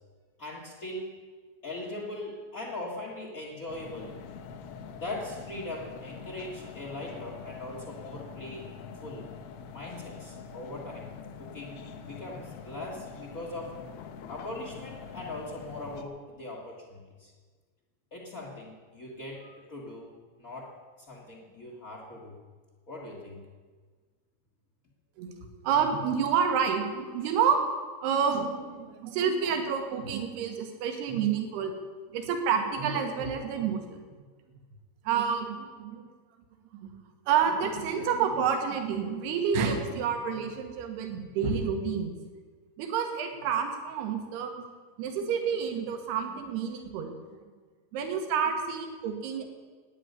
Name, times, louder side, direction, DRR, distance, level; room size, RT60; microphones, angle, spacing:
voice 1, 0.4-1.2 1.6-4.2 5.0-8.7 9.0-9.3 9.7-11.1 11.4-13.8 14.3-17.3 18.1-20.8 21.1-22.4 22.9-23.4 25.4-25.5, left 2 dB, 40° left, -1 dB, 1.2 m, -40 dB
sound 1, 3.7-16.0, left 6 dB, 80° left, 3.0 m, -44 dB
voice 2, 25.6-27.6 28.0-31.7 32.1-33.8 35.1-36.1 36.8-36.9 37.3-42.1 42.8-44.7 45.0-47.1 47.9-49.5, right 7 dB, 80° right, 5 dB, 3.5 m, -29 dB
12.5 x 9.6 x 9.5 m, 1.5 s
omnidirectional pair, 4.7 m